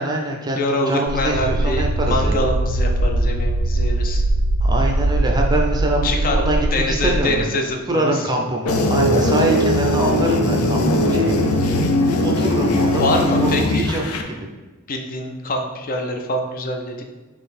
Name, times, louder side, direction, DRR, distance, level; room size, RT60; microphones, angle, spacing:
voice 1, 0.0-2.4 4.6-7.5 7.9-11.5 12.2-14.5, right 1 dB, 20° right, 0 dB, 0.5 m, -24 dB
voice 2, 0.6-4.2 6.0-8.3 13.0-13.9 14.9-17.0, left 1 dB, 40° left, 3 dB, 0.5 m, -24 dB
Low bassy rumble, 1.1-7.2, right 1 dB, 85° right, 0.4 m, -20 dB
sound 1, 8.7-14.2, left 1 dB, 90° left, 0.5 m, -19 dB
3.9 x 3.0 x 4.2 m, 1.3 s
head